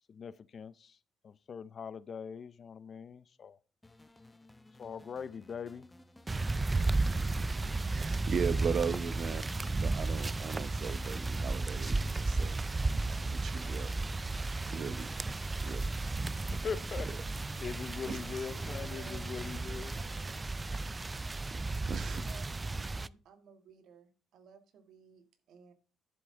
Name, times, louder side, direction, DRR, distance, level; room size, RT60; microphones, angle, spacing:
voice 1, 0.1-1.0 1.2-3.6 4.8-5.8 16.5-17.2 17.6-19.9, left 6 dB, 50° left, 0.7 m, -41 dB
sound 1, 3.8-9.2, left 2 dB, 15° left, 0.9 m, -57 dB
sound 2, 6.3-23.1, right 3 dB, 20° right, 0.4 m, -34 dB
sound 3, 6.8-15.1, left 6 dB, 75° left, 1.5 m, -62 dB
voice 2, 7.8-14.0 14.7-15.2 15.6-16.0 18.1-18.2 21.9-22.2, right 6 dB, 55° right, 0.8 m, -38 dB
voice 3, 18.7-19.3 19.6-20.4 22.0-22.5 22.9-25.7, right 6 dB, 75° right, 1.6 m, -57 dB
11.0 x 7.7 x 3.7 m
cardioid pair, 90°, 0 cm